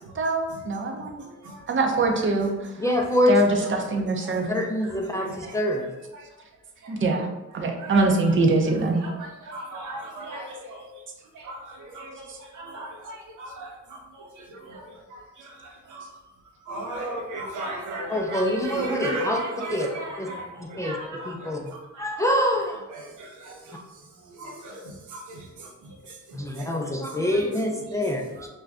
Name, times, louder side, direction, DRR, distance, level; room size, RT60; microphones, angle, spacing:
voice 1, 0.2-1.2 1.7-2.5 3.3-4.5 6.9-7.3 7.5-9.0, right 2 dB, 40° right, 2 dB, 0.6 m, -23 dB
voice 2, 2.8-3.4 4.5-5.9 18.1-19.4 19.7-19.9 20.2-20.3 20.6-22.8 26.3-28.5, left 1 dB, 10° left, 0 dB, 0.3 m, -25 dB
voice 3, 9.4-10.9 11.3-13.7 14.2-14.9 15.6-16.1 16.7-21.5 23.0-23.8 24.4-24.8 25.1-25.7 26.6-26.7, right 2 dB, 85° right, 1 dB, 0.7 m, -36 dB
2.5 x 2.2 x 3.3 m, 1.1 s
cardioid pair, 80°, 30 cm